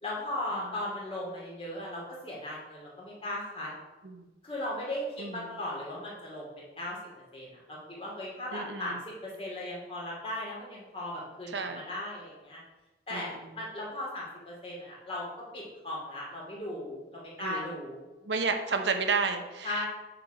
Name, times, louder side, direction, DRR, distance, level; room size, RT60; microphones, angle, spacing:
voice 1, 0.0-3.7 4.4-7.0 7.3-12.6 13.1-15.2 15.5-18.0 19.6-19.9, left 1 dB, 30° left, -4 dB, 2.4 m, -37 dB
voice 2, 5.2-5.5 8.5-9.0 11.5-11.8 13.1-13.3 17.4-17.7 18.2-19.9, right 4 dB, 90° right, 6 dB, 0.9 m, -32 dB
7.8 x 4.6 x 5.0 m, 1.1 s
head